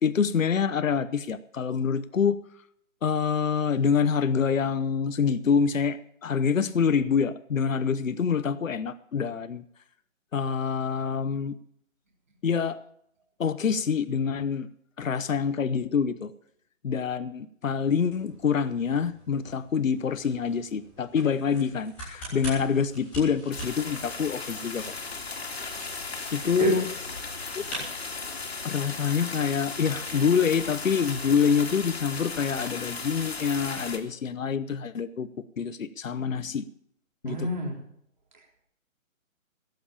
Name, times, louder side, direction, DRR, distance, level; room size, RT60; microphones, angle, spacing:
voice 1, 0.0-2.4 3.0-9.6 10.3-11.6 12.4-12.8 13.4-14.7 15.0-16.3 16.8-24.9 26.3-26.8 27.5-27.6 28.6-35.3 35.6-36.7 37.2-37.5, left 6 dB, 70° left, 14 dB, 0.9 m, -26 dB
sound 1, 17.8-28.6, right 1 dB, 5° left, 3.2 m, -44 dB
sound 2, 23.5-34.0, left 4 dB, 50° left, 2.1 m, -36 dB
voice 2, 37.2-37.8 38.3-38.6, right 1 dB, 35° right, -1 dB, 3.6 m, -29 dB
17.0 x 7.9 x 7.2 m, 0.71 s
hypercardioid pair, 180°, 41 cm